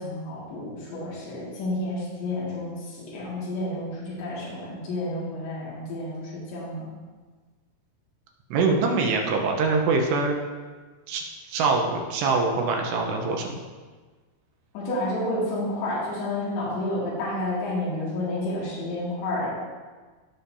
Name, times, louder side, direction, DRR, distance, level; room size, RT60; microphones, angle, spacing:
voice 1, 0.0-6.9 14.7-19.5, left 1 dB, 85° left, -8 dB, 4.5 m, -30 dB
voice 2, 8.5-10.4 11.1-11.2 11.5-13.5, right 4 dB, 80° right, 1 dB, 3.1 m, -24 dB
16.0 x 6.5 x 2.8 m, 1.4 s
omnidirectional pair, 5.0 m